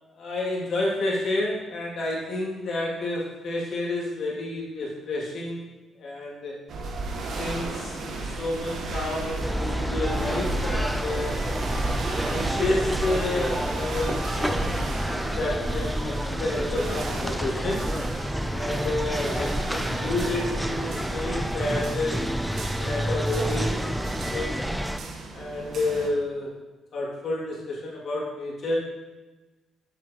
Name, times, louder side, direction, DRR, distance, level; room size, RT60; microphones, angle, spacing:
voice 1, 0.2-5.7 6.0-6.5 7.1-11.4 12.3-14.7 15.1-17.8 18.5-22.3 22.8-24.6 25.3-26.5 26.9-28.8, left 2 dB, 60° left, -4 dB, 2.3 m, -30 dB
sound 1, 6.7-26.1, right 3 dB, 65° right, 1.1 m, -35 dB
sound 2, 9.4-25.0, equal, ahead, 0.4 m, -29 dB
7.4 x 7.4 x 2.9 m, 1.2 s
cardioid pair, 90°, 0 cm